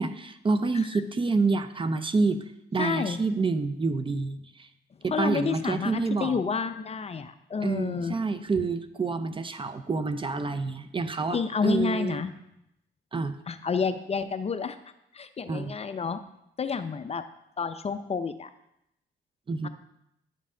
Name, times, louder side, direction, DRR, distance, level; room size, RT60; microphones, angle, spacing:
voice 1, 0.0-2.4 2.7-4.7 5.0-6.4 7.6-12.2 13.1-13.4 15.5-15.7 19.5-19.7, right 4 dB, 25° right, 10 dB, 0.5 m, -28 dB
voice 2, 2.8-3.2 5.1-8.2 11.3-12.3 13.5-14.8 15.1-16.2 16.6-17.2 17.6-18.5 19.6-19.7, left 5 dB, 30° left, 10 dB, 0.5 m, -29 dB
9.8 x 5.4 x 3.7 m, 0.82 s
cardioid pair, 90°, 20 cm